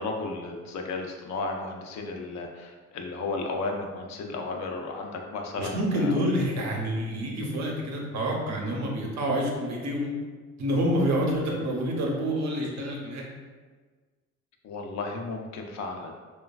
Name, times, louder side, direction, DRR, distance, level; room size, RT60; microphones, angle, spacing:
voice 1, 0.0-6.2 14.6-16.1, left 3 dB, 65° left, 2 dB, 0.5 m, -34 dB
voice 2, 5.6-10.1 10.6-13.2, equal, 65° right, -1 dB, 0.7 m, -27 dB
3.1 x 2.2 x 2.2 m, 1.4 s
cardioid pair, 90°, 30 cm